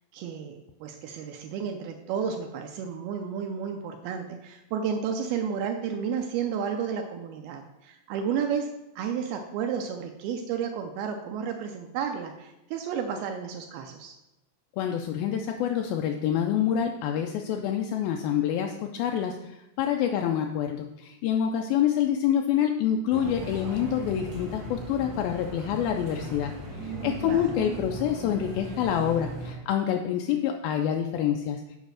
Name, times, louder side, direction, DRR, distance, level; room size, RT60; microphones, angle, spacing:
voice 1, 0.1-8.7 9.0-14.1 27.2-27.6, right 7 dB, 80° right, 5 dB, 2.4 m, -32 dB
voice 2, 14.8-26.5 26.8-31.6, left 9 dB, 85° left, 4 dB, 2.1 m, -27 dB
sound 1, 23.1-29.5, right 1 dB, 60° right, 1.1 m, -38 dB
7.4 x 5.0 x 6.3 m, 0.94 s
omnidirectional pair, 4.8 m